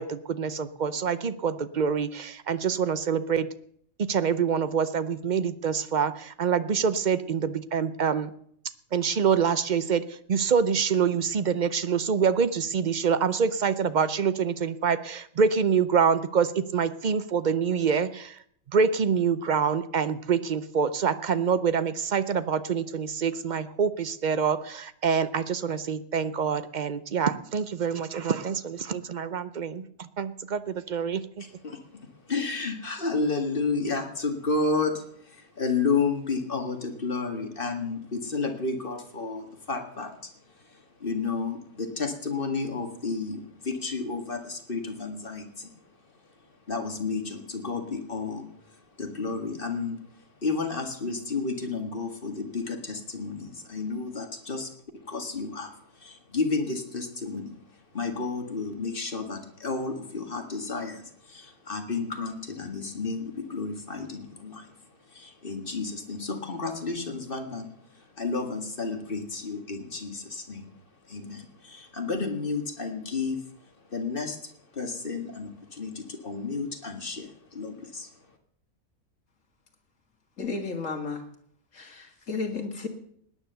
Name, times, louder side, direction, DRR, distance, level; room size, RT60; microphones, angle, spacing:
voice 1, 0.0-3.5 4.0-8.3 8.9-18.4 18.7-31.4, right 6 dB, 50° right, 14 dB, 0.6 m, -26 dB
voice 2, 31.6-40.3 40.6-45.7 46.7-50.0 50.4-57.6 57.9-64.8 65.1-70.7 71.0-73.5 73.9-78.1, left 4 dB, 40° left, 5 dB, 2.0 m, -32 dB
voice 3, 80.4-81.2 81.7-82.9, left 4 dB, 65° left, 4 dB, 2.5 m, -33 dB
18.0 x 10.0 x 6.8 m, 0.67 s
omnidirectional pair, 1.5 m